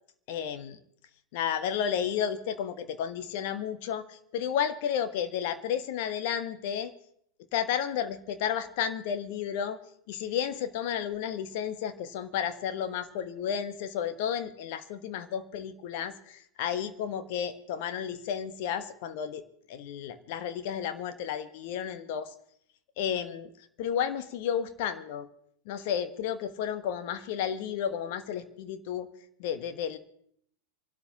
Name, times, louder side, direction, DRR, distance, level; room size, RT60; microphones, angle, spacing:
voice 1, 0.3-0.8 1.3-6.9 7.5-9.8 10.1-19.4 19.7-22.3 23.0-23.5 23.8-25.3 25.7-29.1 29.4-30.0, left 8 dB, 50° left, 9 dB, 1.2 m, -32 dB
28.0 x 12.5 x 2.8 m, 0.67 s
figure-of-eight pair, 90°, 0 cm